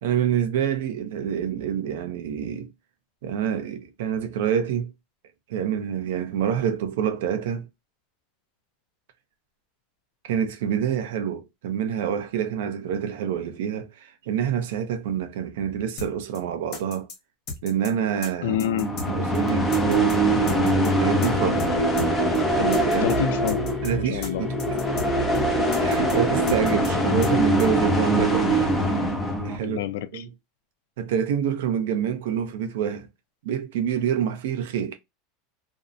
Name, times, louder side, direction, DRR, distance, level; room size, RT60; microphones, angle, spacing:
voice 1, 0.0-2.7 3.2-4.9 5.5-7.7 10.2-17.1 17.6-18.6 19.0-21.7 22.6-23.1 23.8-24.6 25.8-28.7 29.4-29.8 30.1-30.3 31.0-33.1 33.4-35.0, right 8 dB, 80° right, 0.5 m, -27 dB
sound 1, 16.0-16.1 16.3-16.4 16.7-17.2 17.5-17.9 18.2-18.3 18.6-19.1 19.3-19.4 19.7-20.2 20.5-20.9 21.2-21.3 21.6-21.7 22.0-22.1 22.3-22.4 22.7-23.2 23.5-23.9 24.2-24.3 24.6-25.1 25.3-25.4 25.7-26.2 26.5-26.9 27.2-27.3 27.6-27.7, left 4 dB, 45° left, 0.8 m, -35 dB
voice 2, 18.4-18.9 23.0-23.6 24.0-24.4 29.6-30.2, left 10 dB, 80° left, 0.3 m, -27 dB
sound 2, 18.5-29.6, right 1 dB, 10° left, 0.5 m, -23 dB
2.6 x 2.0 x 2.5 m
supercardioid pair, 155°, 0 cm